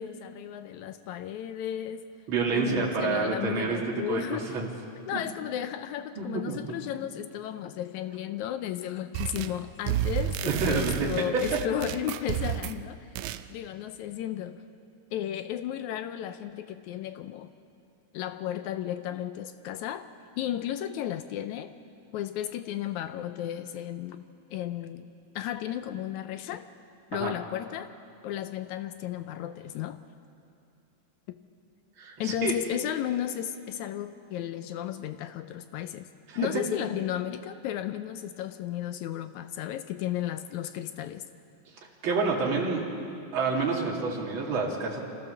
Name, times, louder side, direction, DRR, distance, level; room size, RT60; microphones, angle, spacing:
voice 1, 0.0-2.1 2.5-4.6 5.1-13.1 13.5-14.6 15.1-17.5 18.1-20.1 20.4-21.7 22.1-24.2 24.5-25.1 25.4-26.7 27.1-27.9 28.2-30.0 31.3-31.4 32.2-36.1 36.4-41.2, left 11 dB, 75° left, 10 dB, 1.9 m, -34 dB
voice 2, 2.3-4.7 6.2-6.6 10.5-11.6 27.1-27.3 32.0-32.5 36.3-36.5 42.0-42.9 43.3-45.0, right 4 dB, 40° right, -2 dB, 3.0 m, -28 dB
sound 1, 9.1-9.6 9.9-12.8 13.2-13.4, right 12 dB, 75° right, 1.9 m, -31 dB
26.5 x 15.0 x 6.9 m, 2.5 s
omnidirectional pair, 3.6 m